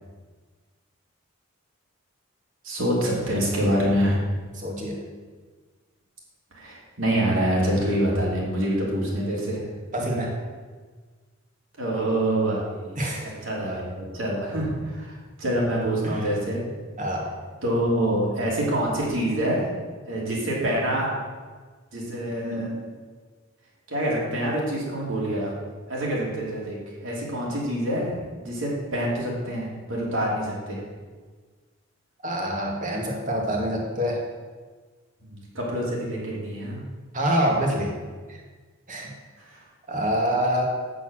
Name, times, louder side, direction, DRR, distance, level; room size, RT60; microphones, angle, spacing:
voice 1, 2.6-4.2 6.5-9.6 10.0-10.2 11.8-16.6 17.6-19.7 20.1-21.1 21.9-22.7 23.9-25.5 25.9-30.8 35.2-36.8 39.4-39.5, right 1 dB, 70° right, -4 dB, 2.9 m, -26 dB
voice 2, 4.6-5.0 9.9-10.3 13.0-13.3 16.0-16.2 17.0-17.3 22.4-22.7 32.2-34.2 37.1-37.9 38.3-38.4 38.9-39.1 39.9-40.6, equal, 40° right, -1 dB, 2.0 m, -26 dB
8.6 x 6.4 x 6.3 m, 1.4 s
head